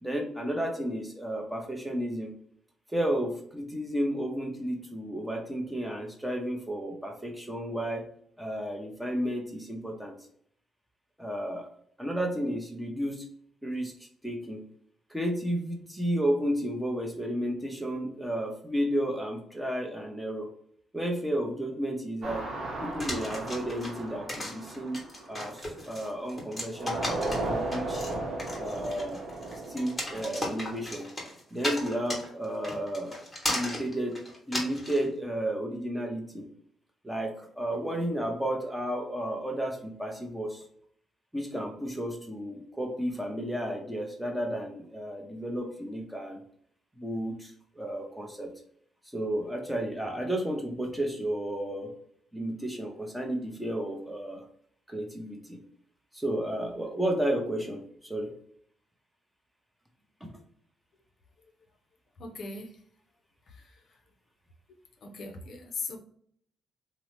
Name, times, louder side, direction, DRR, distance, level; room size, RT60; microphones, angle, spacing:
voice 1, 0.0-2.3 2.9-8.1 8.4-10.1 11.2-11.7 12.0-13.3 13.6-14.0 14.2-14.6 15.1-20.5 20.9-22.5 22.8-25.0 25.3-28.0 28.5-29.2 29.7-31.1 31.5-33.2 33.5-36.5 37.0-40.7 41.3-46.4 47.0-48.5 49.1-51.9 52.3-54.4 54.9-55.6 56.1-58.3 60.2-60.3, right 1 dB, 5° right, 2 dB, 0.7 m, -32 dB
sound 1, 22.2-26.2 26.7-30.9, right 2 dB, 65° right, 0.8 m, -36 dB
sound 2, 23.0-35.0, left 1 dB, 15° left, 1.0 m, -36 dB
voice 2, 62.2-62.7 65.0-66.0, left 3 dB, 60° left, 3 dB, 0.5 m, -38 dB
2.7 x 2.0 x 3.1 m, 0.63 s
cardioid pair, 90°, 0 cm